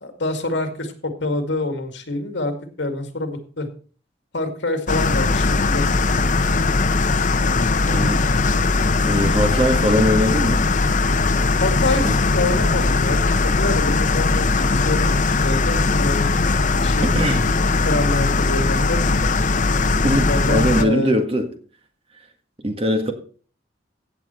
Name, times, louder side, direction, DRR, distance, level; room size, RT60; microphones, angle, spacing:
voice 1, 0.0-3.7 4.3-5.9 11.6-16.3 16.8-17.1 17.9-19.6 20.3-21.1, left 2 dB, 70° left, 6 dB, 2.1 m, -26 dB
sound 1, 4.9-20.8, left 3 dB, 45° left, 0.7 m, -19 dB
voice 2, 7.9-8.3 8.8-10.6 11.8-12.2 17.2-17.4 20.0-21.5 22.6-23.1, equal, 30° right, 5 dB, 1.7 m, -21 dB
16.0 x 7.8 x 4.3 m, 0.42 s
head